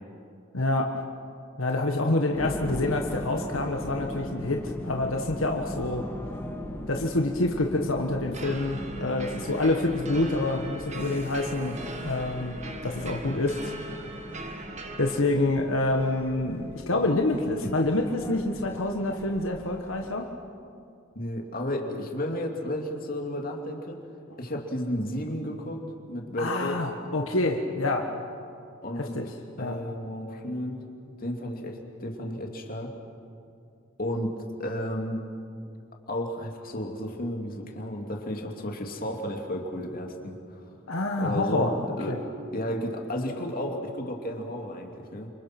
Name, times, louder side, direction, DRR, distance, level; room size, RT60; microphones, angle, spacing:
voice 1, 0.5-1.0 1.6-6.1 6.9-13.7 14.4-14.5 15.0-20.3 26.4-28.1 28.9-29.3 29.6-29.8 40.9-42.2, left 2 dB, 80° left, 3 dB, 1.6 m, -27 dB
sound 1, 2.3-20.1, equal, 10° left, 1.9 m, -39 dB
sound 2, 8.3-15.2, right 2 dB, 35° right, 1.8 m, -40 dB
voice 2, 21.1-24.0 24.4-26.8 28.8-29.2 29.6-32.9 34.0-34.3 34.6-35.2 36.1-40.6 41.2-41.7 42.0-42.2 42.5-45.3, equal, 45° left, 2 dB, 2.7 m, -33 dB
30.0 x 25.5 x 6.1 m, 2.5 s
head